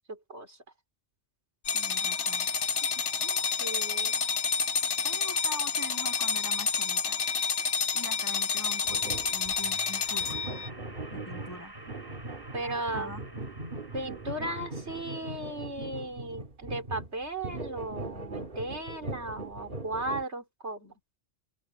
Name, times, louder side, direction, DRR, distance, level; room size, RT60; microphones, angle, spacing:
voice 1, 0.1-0.6 3.6-4.2 12.5-13.1 13.9-20.9, right 2 dB, 80° right, 4.5 m, -36 dB
sound 1, 1.7-10.7, left 6 dB, 85° left, 1.3 m, -29 dB
voice 2, 1.7-2.5 3.2-3.4 5.0-7.2 7.9-10.6 11.1-11.7 12.5-13.2, equal, 15° left, 7.4 m, -43 dB
sound 2, 8.8-9.6 10.2-20.2, right 2 dB, 50° right, 1.9 m, -40 dB
sound 3, 8.9-16.0, right 1 dB, 20° right, 5.7 m, -50 dB
open air
omnidirectional pair, 1.1 m